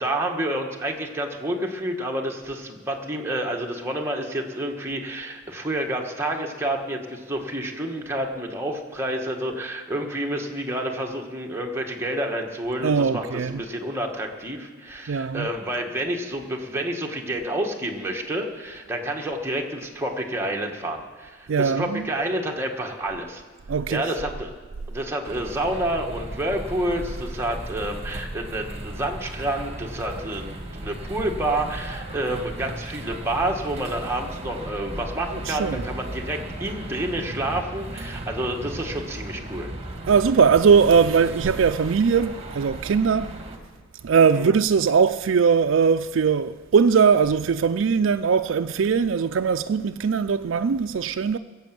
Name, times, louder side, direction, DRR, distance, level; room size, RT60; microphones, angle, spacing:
voice 1, 0.0-23.4 23.9-24.5 24.9-39.7 44.3-44.6, right 1 dB, 15° right, 1.5 m, -29 dB
voice 2, 12.8-13.6 15.1-15.5 21.5-22.1 23.7-24.1 35.4-35.9 40.1-43.3 44.0-51.4, right 6 dB, 70° right, 0.4 m, -20 dB
sound 1, 25.2-43.6, right 1 dB, 30° right, 1.7 m, -36 dB
20.5 x 8.0 x 7.6 m
head